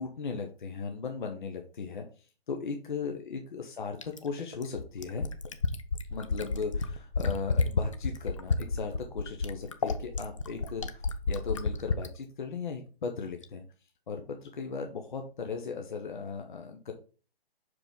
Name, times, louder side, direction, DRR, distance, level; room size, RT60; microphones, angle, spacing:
voice 1, 0.0-5.3 6.1-13.6 14.1-16.9, left 5 dB, 50° left, 4 dB, 0.9 m, -37 dB
Fill (with liquid), 4.0-12.1 13.4-13.5, left 4 dB, 30° left, 0.5 m, -30 dB
6.1 x 4.9 x 3.7 m, 0.37 s
figure-of-eight pair, 140°, 31 cm